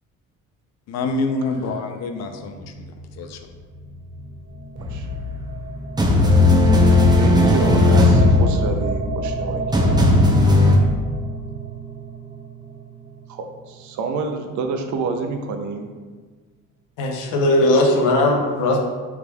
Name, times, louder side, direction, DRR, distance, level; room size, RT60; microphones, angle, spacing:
voice 1, 0.9-2.6 3.2-3.4, left 3 dB, 55° left, 5 dB, 0.5 m, -26 dB
sound 1, 2.2-14.4, right 3 dB, 35° right, 1.0 m, -32 dB
sound 2, 4.8-5.6 6.0-10.8, left 2 dB, 15° right, 0.5 m, -16 dB
voice 2, 7.1-9.9 13.3-15.9, right 4 dB, 70° right, 5 dB, 0.6 m, -28 dB
voice 3, 17.0-18.8, left 1 dB, 85° left, 1 dB, 0.8 m, -18 dB
4.7 x 3.4 x 2.3 m, 1.4 s
cardioid pair, 100°, 31 cm